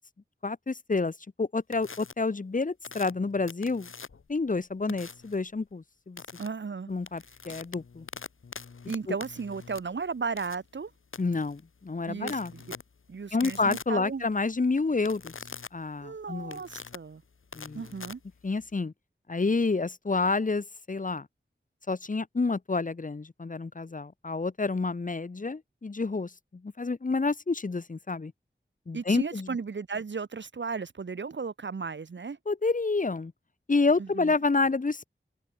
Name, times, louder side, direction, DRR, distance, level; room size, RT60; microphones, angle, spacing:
voice 1, 0.4-3.9 4.3-6.2 6.9-8.1 9.1-9.2 11.2-12.5 13.3-15.3 15.7-16.6 17.5-17.8 18.4-18.9 19.3-21.3 21.9-28.3 28.9-29.6 32.5-33.3 33.7-35.1, left 3 dB, 40° left, 0.7 m, -29 dB
sound 1, 1.7-2.1 2.8-4.3 4.9-5.4 6.2-6.5 6.9-18.8, left 5 dB, 85° left, 0.9 m, -44 dB
voice 2, 6.4-6.9 8.9-10.9 12.1-12.6 13.1-14.2 16.0-17.2 17.7-18.2 28.9-32.4 34.0-34.3, right 5 dB, 65° right, 0.7 m, -35 dB
wide cardioid pair, 50°, 20 cm